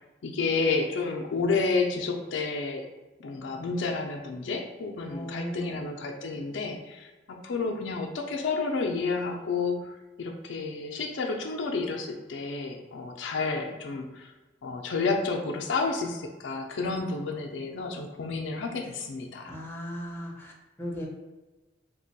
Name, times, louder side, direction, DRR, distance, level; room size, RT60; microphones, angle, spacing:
voice 1, 0.0-2.9 3.2-14.3 14.6-19.5, left 4 dB, 75° left, 2 dB, 0.4 m, -30 dB
voice 2, 5.1-5.9 19.5-20.5 20.8-21.1, equal, 10° left, -3 dB, 0.7 m, -37 dB
2.9 x 2.2 x 4.0 m, 1.2 s
head